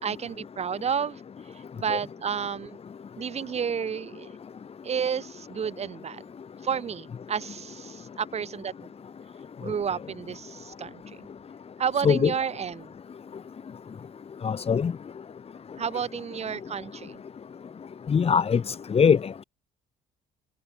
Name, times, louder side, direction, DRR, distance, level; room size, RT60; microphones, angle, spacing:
voice 1, 0.0-1.2 1.5-2.8 3.2-4.4 4.8-6.2 6.6-8.9 9.6-11.3 11.8-12.9 15.8-17.2, right 7 dB, 40° right, 2.5 m, -31 dB
voice 2, 14.4-14.9 18.1-19.4, left 6 dB, 35° left, 4.0 m, -22 dB
cardioid pair, 110°, 17 cm